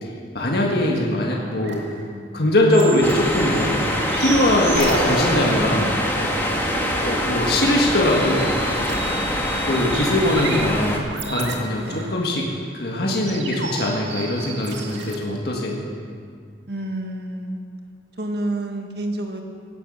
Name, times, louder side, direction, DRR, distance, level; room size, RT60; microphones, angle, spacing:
voice 1, 0.0-1.8 2.3-3.9 4.2-6.0 7.0-8.6 9.6-12.4 12.7-15.8, left 1 dB, 60° left, -1 dB, 1.8 m, -21 dB
sound 1, 1.1-15.2, right 3 dB, 80° right, 2.1 m, -35 dB
sound 2, 3.0-11.0, left 1 dB, 10° left, 1.7 m, -24 dB
sound 3, 4.8-7.6, equal, 35° left, 2.9 m, -29 dB
voice 2, 6.4-6.8 11.8-12.1 16.7-17.6 18.2-19.4, right 1 dB, 60° right, 3 dB, 1.8 m, -29 dB
16.5 x 11.5 x 6.5 m, 2.1 s
head